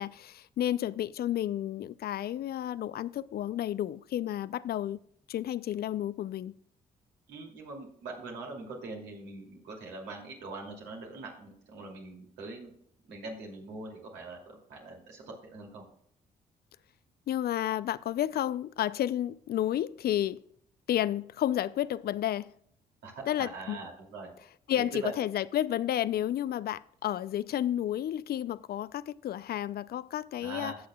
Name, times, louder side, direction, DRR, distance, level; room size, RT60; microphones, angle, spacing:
voice 1, 0.0-5.0 5.3-6.6 17.3-20.4 20.9-22.5 23.3-23.8 24.7-30.7, left 11 dB, 60° left, 0.4 m, -31 dB
voice 2, 7.3-12.7 13.1-15.9 23.0-24.3 24.8-25.1 30.4-30.8, right 3 dB, 85° right, 2.6 m, -42 dB
16.0 x 6.5 x 2.3 m
supercardioid pair, 55°, 18 cm